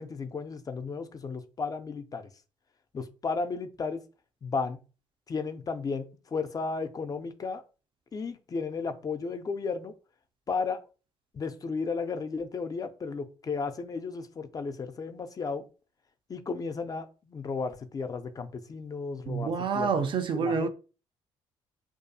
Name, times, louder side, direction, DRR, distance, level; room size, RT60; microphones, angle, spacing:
voice 1, 0.0-2.3 2.9-4.0 4.4-4.8 5.3-6.1 6.3-7.6 8.1-9.9 10.5-10.8 11.3-15.7 16.3-20.1 20.3-20.7, left 4 dB, 35° left, 0.3 m, -34 dB
voice 2, 19.3-20.7, right 5 dB, 45° right, 0.4 m, -28 dB
2.3 x 2.3 x 2.5 m
cardioid pair, 80°, 11 cm